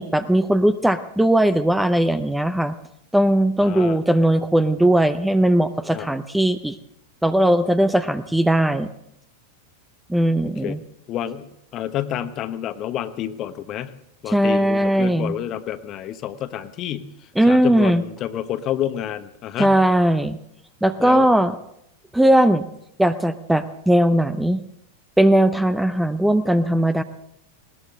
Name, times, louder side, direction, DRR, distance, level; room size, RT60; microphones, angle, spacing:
voice 1, 0.0-2.7 3.1-6.8 7.2-8.9 10.1-10.8 14.3-15.3 17.4-18.0 19.6-20.4 20.8-21.5 22.1-22.6 23.0-24.6 25.2-27.0, right 1 dB, 5° right, 11 dB, 0.7 m, -18 dB
voice 2, 3.6-4.0 5.9-6.2 10.6-10.8 11.1-13.9 14.2-17.1 17.5-19.8 21.0-21.3, left 11 dB, 35° left, 12 dB, 1.1 m, -29 dB
20.0 x 19.0 x 3.8 m, 0.76 s
figure-of-eight pair, 90°, 0 cm